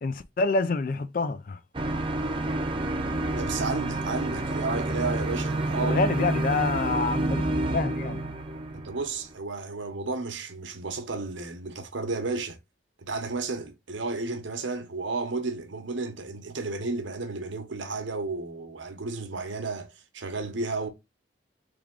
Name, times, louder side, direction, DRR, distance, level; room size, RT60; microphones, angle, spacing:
voice 1, 0.0-1.6 5.8-7.4 7.7-8.3, left 3 dB, 45° left, 0.4 m, -27 dB
sound 1, 1.7-9.3, right 1 dB, 25° right, 0.6 m, -28 dB
voice 2, 3.3-6.0 8.7-12.6 13.1-19.9 20.1-20.9, right 3 dB, 80° right, 0.9 m, -32 dB
3.5 x 3.5 x 3.6 m
head